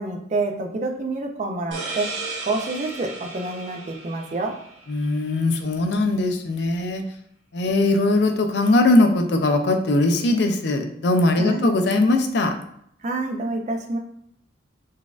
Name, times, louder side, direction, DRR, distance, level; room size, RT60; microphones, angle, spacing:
voice 1, 0.0-2.1 2.4-4.5 11.4-11.7 13.0-14.0, right 2 dB, 35° right, 3 dB, 0.4 m, -27 dB
sound 1, 1.7-5.2, right 3 dB, 75° right, 0.9 m, -35 dB
voice 2, 4.9-7.0 7.5-12.5, left 2 dB, 60° left, 5 dB, 0.4 m, -20 dB
3.9 x 2.4 x 2.3 m, 0.69 s
head